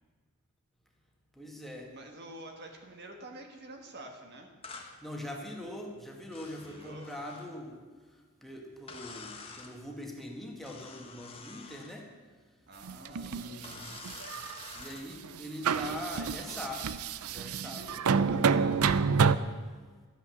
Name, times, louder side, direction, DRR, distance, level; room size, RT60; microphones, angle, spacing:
voice 1, 1.3-1.9 5.0-7.8 8.4-12.1 13.0-14.0 14.7-17.0 17.2-17.9, left 1 dB, ahead, 0 dB, 1.6 m, -42 dB
voice 2, 1.9-4.5 6.6-7.1 12.7-13.9 17.6-18.9, right 1 dB, 50° right, 3 dB, 1.5 m, -48 dB
sound 1, 4.6-4.9 6.3-7.5 8.9-9.7 10.6-12.0 13.6-15.1 16.0-16.9, left 4 dB, 25° left, 1.4 m, -48 dB
sound 2, 12.9-13.5 14.0-14.8 15.2-15.4 15.6-19.4, right 5 dB, 75° right, 0.5 m, -28 dB
12.5 x 9.1 x 7.0 m, 1.4 s
head